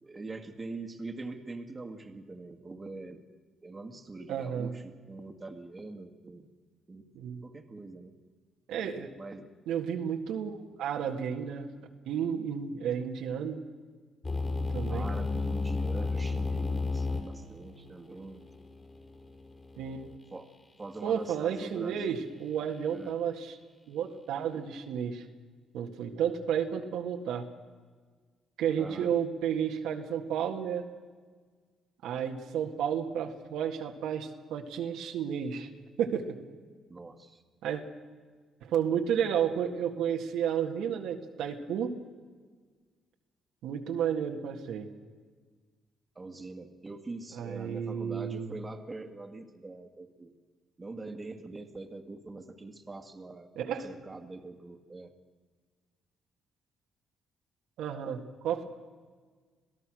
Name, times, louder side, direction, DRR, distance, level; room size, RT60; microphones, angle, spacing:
voice 1, 0.0-3.2 3.6-6.6 6.9-7.1 7.4-8.1 9.2-9.5 14.9-18.5 20.3-20.5 20.8-22.2 22.9-23.2 28.8-29.1 36.9-37.4 46.2-50.3 50.8-53.5 53.8-55.1, right 3 dB, 25° right, 6 dB, 1.9 m, -43 dB
voice 2, 4.3-4.7 7.2-7.4 8.7-9.1 9.7-11.7 12.1-13.6 14.6-15.1 19.8-20.1 21.0-23.6 23.9-25.2 25.7-27.5 28.6-30.9 32.0-35.7 36.0-36.4 37.6-37.8 38.6-41.9 43.6-44.9 47.4-48.5 53.6-53.9 57.8-58.6, right 8 dB, 85° right, 3 dB, 1.9 m, -32 dB
sound 1, 14.2-20.2, left 3 dB, 35° left, 5.5 m, -33 dB
26.5 x 17.0 x 6.3 m, 1.5 s
cardioid pair, 90°, 0 cm